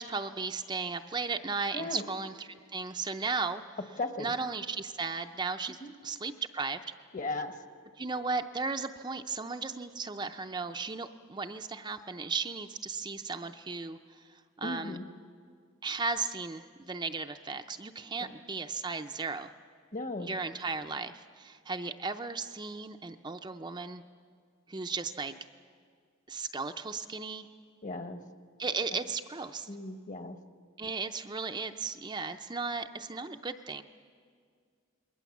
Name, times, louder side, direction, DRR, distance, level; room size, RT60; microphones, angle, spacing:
voice 1, 0.0-3.6 4.2-6.8 8.0-15.0 15.8-19.5 20.2-24.0 24.7-25.3 26.3-27.5 28.6-29.7 30.8-33.8, right 4 dB, 20° right, 6 dB, 0.5 m, -35 dB
voice 2, 7.1-7.5 14.6-15.0 19.9-20.3 27.8-28.2 29.7-30.4, left 2 dB, 35° left, 8 dB, 1.2 m, -36 dB
27.5 x 21.0 x 7.2 m, 2.1 s
head